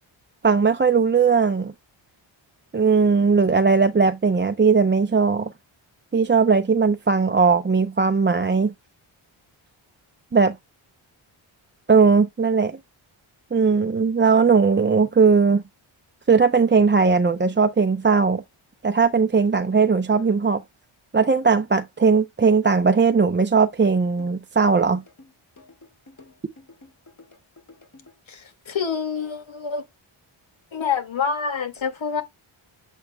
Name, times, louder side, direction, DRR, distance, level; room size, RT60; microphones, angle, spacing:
voice 1, 0.4-1.7 2.7-5.5 6.1-8.7 10.3-10.5 11.9-12.8 13.5-15.6 16.3-18.4 18.8-20.6 21.1-25.0, right 5 dB, 25° right, 0.6 m, -18 dB
sound 1, 24.2-28.2, left 2 dB, 35° left, 3.5 m, -50 dB
voice 2, 28.3-29.8 30.7-32.2, left 6 dB, 65° left, 2.1 m, -27 dB
8.0 x 7.2 x 2.2 m
wide cardioid pair, 95°, 50 cm